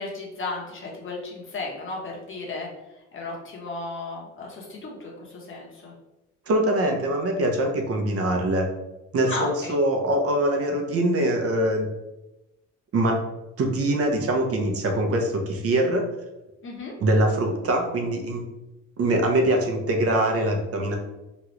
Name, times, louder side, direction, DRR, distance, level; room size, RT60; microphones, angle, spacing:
voice 1, 0.0-2.7 3.1-5.9 9.3-9.7 16.6-16.9, left 3 dB, 40° left, -1 dB, 1.0 m, -34 dB
voice 2, 6.5-8.6 9.1-11.9 12.9-13.2 13.6-16.0 17.0-18.4 19.0-21.0, right 1 dB, 50° right, 2 dB, 0.7 m, -23 dB
3.0 x 2.4 x 3.0 m, 0.96 s
cardioid pair, 90°, 30 cm